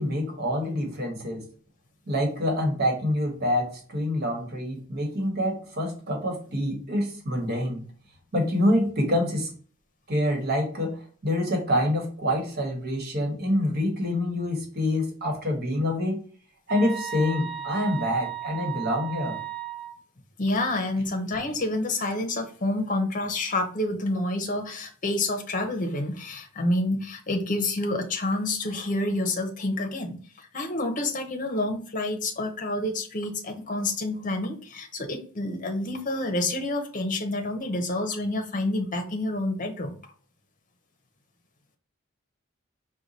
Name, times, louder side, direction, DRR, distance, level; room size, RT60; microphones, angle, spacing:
voice 1, 0.0-1.4 2.1-7.8 8.3-9.5 10.1-16.2 16.7-19.4, left 1 dB, 50° right, 2 dB, 1.4 m, -26 dB
sound 1, 16.7-19.9, right 10 dB, 70° right, 1.0 m, -35 dB
voice 2, 20.4-40.0, left 2 dB, 40° left, 5 dB, 0.8 m, -28 dB
4.7 x 2.3 x 4.0 m, 0.42 s
head